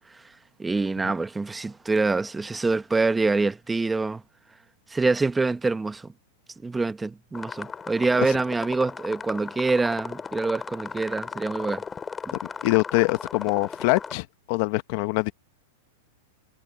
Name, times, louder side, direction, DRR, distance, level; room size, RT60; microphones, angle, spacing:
voice 1, 0.6-4.2 4.9-6.1 6.6-11.8 12.3-12.4, right 3 dB, 10° right, 1.1 m, -25 dB
sound 1, 7.3-14.1, left 5 dB, 15° left, 5.8 m, -36 dB
voice 2, 12.6-15.3, left 23 dB, 50° left, 1.1 m, -24 dB
hypercardioid pair, 135°, 0 cm